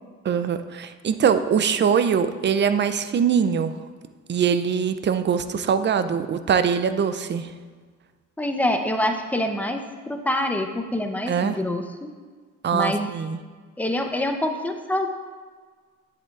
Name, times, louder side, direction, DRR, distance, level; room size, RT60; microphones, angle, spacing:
voice 1, 0.2-3.7 4.3-7.5 11.3-11.6 12.6-13.4, right 7 dB, 35° right, 11 dB, 0.5 m, -22 dB
voice 2, 8.4-9.8 10.1-12.1 12.7-13.1 13.8-15.1, left 1 dB, 5° left, 5 dB, 0.7 m, -25 dB
9.6 x 7.8 x 2.5 m, 1.5 s
cardioid pair, 90°, 30 cm